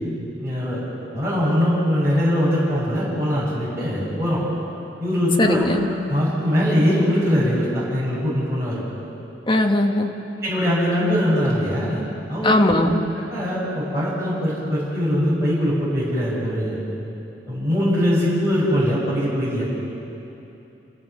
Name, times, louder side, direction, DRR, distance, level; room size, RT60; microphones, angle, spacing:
voice 1, 0.4-0.8 1.1-4.4 5.0-5.7 6.1-8.8 10.4-12.9 13.3-16.8 17.5-19.6, equal, 15° right, -10 dB, 7.0 m, -22 dB
voice 2, 5.4-5.8 9.5-10.1 12.4-12.9, left 1 dB, 30° left, 2 dB, 1.5 m, -19 dB
29.5 x 15.5 x 7.4 m, 2.9 s
head